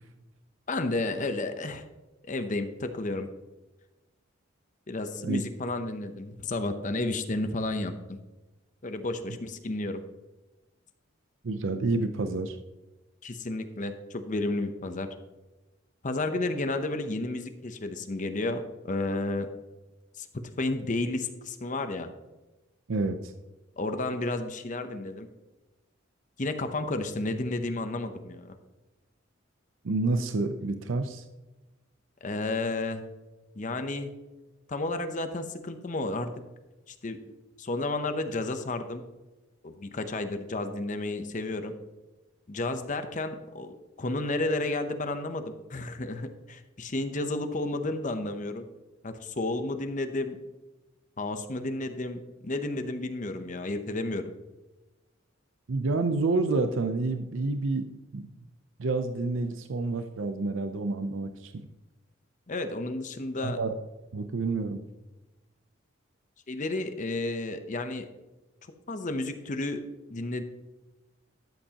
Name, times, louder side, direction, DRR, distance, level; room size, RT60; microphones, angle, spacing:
voice 1, 0.7-1.8 2.2-3.3 4.9-8.2 8.8-10.0 13.2-15.1 16.0-19.5 20.2-22.1 23.8-25.3 26.4-28.6 32.2-33.0 33.6-34.1 34.7-36.3 36.9-37.2 37.6-39.0 39.6-41.7 42.5-48.7 49.0-50.4 51.2-54.3 62.5-63.6 66.5-68.1 68.9-69.8 70.1-70.4, left 2 dB, 40° left, 8 dB, 0.7 m, -32 dB
voice 2, 11.4-12.6 22.9-23.3 29.8-31.2 55.7-58.3 58.8-61.6 63.4-63.8 64.1-64.8, right 3 dB, 80° right, 8 dB, 0.6 m, -29 dB
12.5 x 7.8 x 2.9 m, 1.1 s
head